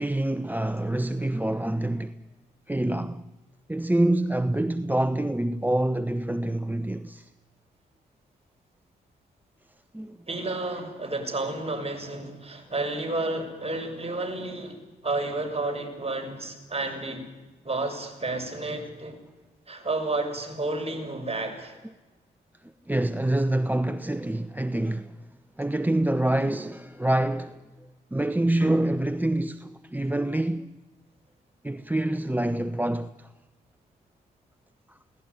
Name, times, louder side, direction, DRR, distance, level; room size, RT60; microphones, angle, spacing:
voice 1, 0.0-2.2 2.7-3.2 3.7-7.3 9.9-10.2 22.9-25.2 25.6-27.6 28.1-30.8 31.6-33.3, right 1 dB, 10° right, 0.9 m, -26 dB
voice 2, 10.3-17.3 17.6-19.2 19.7-21.8, right 2 dB, 30° right, 6.7 m, -31 dB
22.5 x 18.0 x 9.7 m
supercardioid pair, 45°, 20 cm